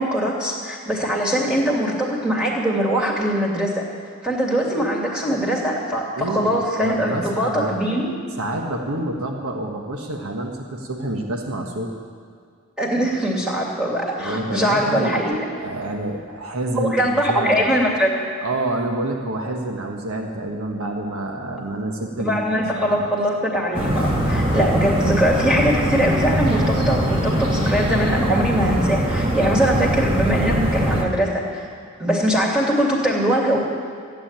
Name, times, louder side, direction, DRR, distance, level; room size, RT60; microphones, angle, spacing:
voice 1, 0.0-3.8 4.2-8.1 12.8-15.6 16.7-18.1 22.2-31.7 32.0-33.6, equal, 5° right, -3 dB, 2.7 m, -22 dB
voice 2, 6.2-7.8 8.4-11.9 14.2-15.2 15.6-17.7 18.4-23.1, right 1 dB, 90° right, 2 dB, 1.5 m, -28 dB
sound 1, 23.7-31.0, equal, 25° right, 1.6 m, -22 dB
15.0 x 9.6 x 9.0 m, 2.1 s
head